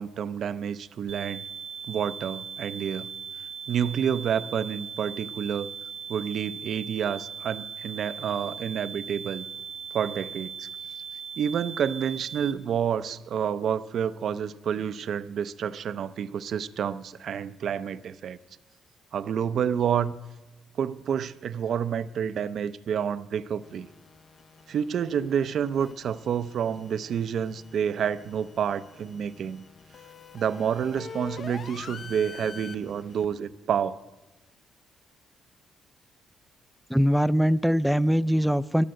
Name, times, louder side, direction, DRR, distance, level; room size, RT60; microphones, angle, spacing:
voice 1, 0.0-1.4 1.9-3.1 3.7-5.7 6.1-9.5 9.9-10.7 11.4-18.4 19.1-20.1 20.8-23.9 24.7-29.6 30.3-34.0, right 8 dB, 65° right, 15 dB, 0.4 m, -29 dB
sound 1, 1.1-12.5, right 7 dB, 80° right, 1.3 m, -39 dB
sound 2, 23.6-33.3, left 5 dB, 45° left, 0.6 m, -46 dB
voice 2, 36.9-38.8, equal, ahead, 17 dB, 0.3 m, -22 dB
12.0 x 11.0 x 6.4 m, 1.1 s
cardioid pair, 90°, 0 cm